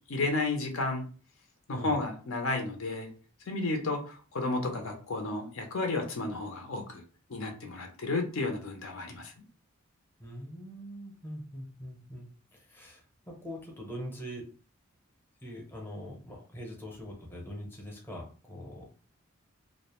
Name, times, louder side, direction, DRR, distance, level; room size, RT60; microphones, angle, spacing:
voice 1, 0.1-1.0 1.7-3.1 3.5-7.0 7.3-9.3, left 2 dB, 70° left, 3 dB, 0.6 m, -32 dB
voice 2, 10.2-14.4 15.4-18.9, equal, 10° left, -1 dB, 0.6 m, -43 dB
2.3 x 2.1 x 2.9 m, 0.38 s
head